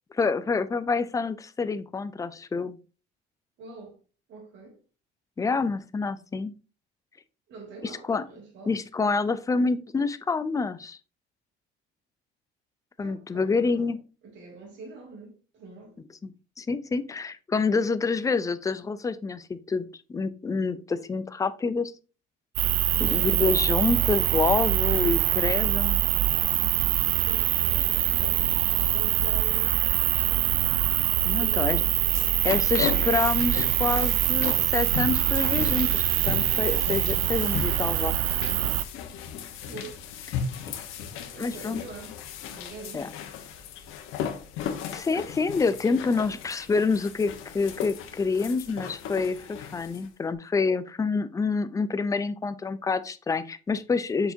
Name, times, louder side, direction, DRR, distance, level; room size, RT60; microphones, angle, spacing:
voice 1, 0.2-2.8 5.4-6.5 8.1-8.2 8.7-11.0 13.0-14.0 16.2-16.3 16.6-21.9 23.0-26.0 31.2-31.8 32.4-38.1 41.4-41.8 42.9-43.1 44.9-54.3, left 4 dB, 15° left, 0.5 m, -27 dB
voice 2, 3.6-4.0 4.3-4.8 7.5-8.8 13.0-13.9 14.2-16.0 22.9-23.4 27.2-29.9 31.4-32.4 39.7-40.0 41.1-42.2 42.5-43.2, right 3 dB, 65° right, 3.1 m, -44 dB
sound 1, 22.6-38.8, right 15 dB, 85° right, 0.5 m, -24 dB
sound 2, 31.6-50.1, left 7 dB, 75° left, 1.3 m, -36 dB
6.9 x 5.7 x 2.7 m
cardioid pair, 140°, 21 cm